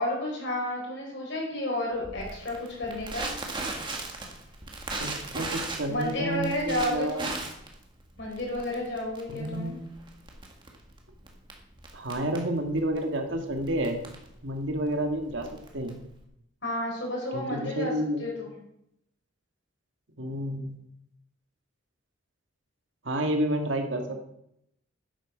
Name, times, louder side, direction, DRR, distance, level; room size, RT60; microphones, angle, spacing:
voice 1, 0.0-3.3 5.9-7.4 8.2-9.8 16.6-17.9 18.2-18.5, left 1 dB, 60° left, -2 dB, 5.1 m, -31 dB
Crackle, 2.0-16.2, right 2 dB, 25° right, 1.8 m, -38 dB
voice 2, 5.0-7.3 9.3-9.9 11.9-14.0 14.4-16.0 17.3-18.3 20.2-20.8 23.0-24.2, right 1 dB, 70° right, 4 dB, 1.7 m, -30 dB
10.0 x 8.4 x 6.1 m, 0.78 s
head